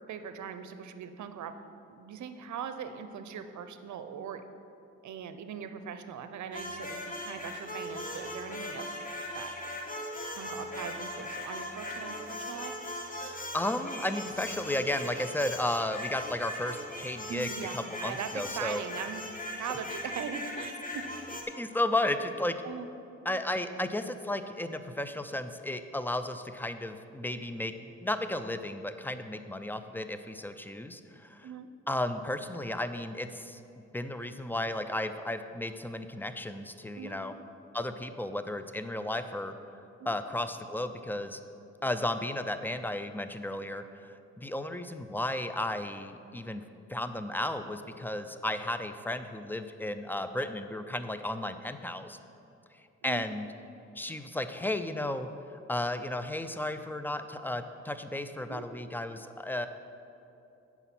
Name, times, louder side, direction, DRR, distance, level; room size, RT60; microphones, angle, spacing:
voice 1, 0.1-1.6 1.9-4.4 5.0-8.9 9.3-9.6 10.3-12.8 17.3-19.2 19.6-21.1 22.6-22.9 31.4-31.7 37.0-37.2 40.0-40.1 53.0-53.3 58.5-58.6, right 7 dB, 80° right, 9 dB, 0.6 m, -40 dB
sound 1, 6.5-21.4, left 1 dB, 30° left, 1.2 m, -39 dB
voice 2, 13.5-18.8 21.6-22.6 23.3-31.5 31.9-33.6 33.9-37.3 37.7-39.5 40.1-41.4 41.8-46.6 46.9-52.2 53.0-53.5 54.0-55.3 55.7-59.7, left 1 dB, 5° left, 9 dB, 0.4 m, -34 dB
8.0 x 6.0 x 5.9 m, 2.8 s
cardioid pair, 75°, 29 cm